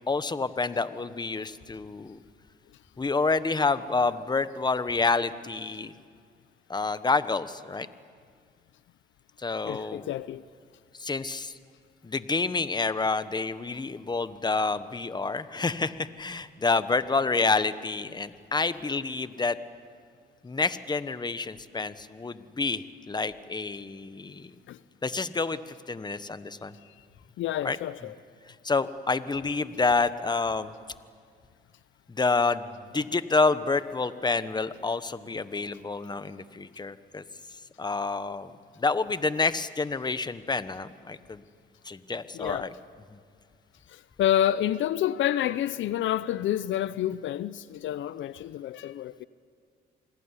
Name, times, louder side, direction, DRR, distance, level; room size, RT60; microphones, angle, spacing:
voice 1, 0.1-2.2 3.0-5.9 6.7-7.9 9.4-10.1 11.0-11.5 12.0-19.6 20.4-24.5 25.0-26.7 27.6-27.8 28.5-30.7 32.1-37.2 37.8-38.5 38.8-41.4 41.8-42.7, left 3 dB, 20° left, 1.2 m, -28 dB
voice 2, 9.7-10.4 24.7-24.8 26.8-26.9 27.4-28.2 42.3-42.7 43.9-49.3, left 11 dB, 75° left, 0.7 m, -29 dB
27.5 x 21.5 x 9.9 m
cardioid pair, 90°, 20 cm